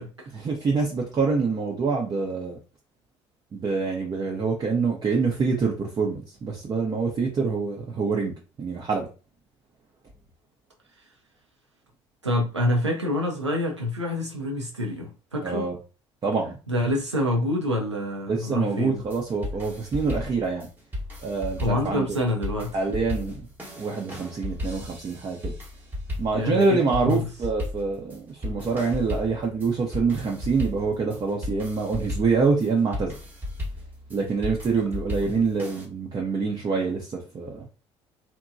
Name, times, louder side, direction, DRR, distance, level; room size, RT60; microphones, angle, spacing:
voice 1, 0.3-2.6 3.5-8.3 8.6-9.1 15.4-15.8 16.2-16.6 18.3-20.7 21.2-22.2 22.7-23.5 23.8-25.5 26.2-33.1 34.1-37.6, right 4 dB, 30° right, 0.5 m, -26 dB
voice 2, 12.2-15.7 16.7-19.0 21.6-22.7 26.3-27.3 35.2-35.3, left 1 dB, 90° right, 0.5 m, -27 dB
sound 1, 19.0-35.9, left 1 dB, 10° right, 0.9 m, -35 dB
2.8 x 2.2 x 2.4 m
figure-of-eight pair, 55°, 15 cm